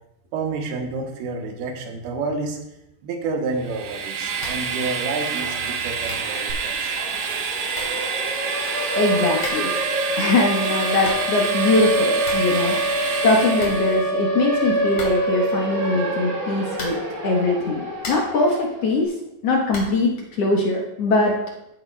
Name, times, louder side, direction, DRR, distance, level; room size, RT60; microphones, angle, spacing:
voice 1, 0.3-2.6 3.0-7.0, right 3 dB, 85° right, 3 dB, 2.8 m, -29 dB
Train, 3.6-14.1, right 5 dB, 70° right, 1.8 m, -28 dB
sound 1, 4.4-4.7 5.0-5.1 5.7-5.8 6.0-6.4 7.3-7.4 7.7-8.1 9.3-9.8 10.7-11.4 11.7-11.8 12.0-12.6 12.8-12.9 13.2-13.3 13.6-14.4 14.9-15.4 16.7-17.2 17.7-18.4 19.7-20.1, left 2 dB, 40° left, 3.2 m, -36 dB
Siren, 6.5-6.6 6.9-18.9, right 1 dB, 50° right, 2.1 m, -26 dB
voice 2, 8.7-9.7 10.2-16.9 17.2-19.1 19.4-20.1 20.4-21.3, left 2 dB, 70° left, -2 dB, 1.4 m, -22 dB
15.0 x 8.5 x 2.2 m, 0.87 s
omnidirectional pair, 4.4 m